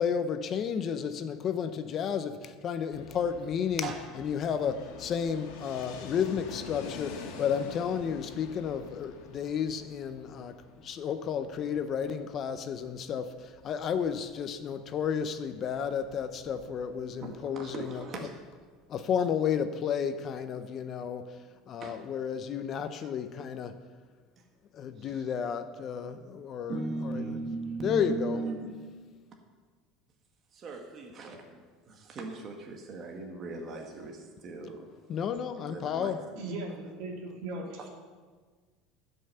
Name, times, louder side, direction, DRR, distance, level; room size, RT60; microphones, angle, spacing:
voice 1, 0.0-18.3 18.9-21.4 21.7-23.8 24.7-27.4 27.8-28.5 35.1-36.3, left 7 dB, 35° left, 0.5 m, -32 dB
Fixed-wing aircraft airplane, 2.9-18.6, left 5 dB, 70° left, 1.6 m, -47 dB
voice 2, 17.3-18.6 21.8-22.0 25.0-25.2 26.7-28.7 30.5-34.9 35.7-36.1 37.8-37.9, right 3 dB, 30° right, 1.2 m, -38 dB
voice 3, 36.3-37.9, right 2 dB, 65° right, 2.5 m, -38 dB
13.5 x 5.5 x 6.8 m
cardioid pair, 160°, 0 cm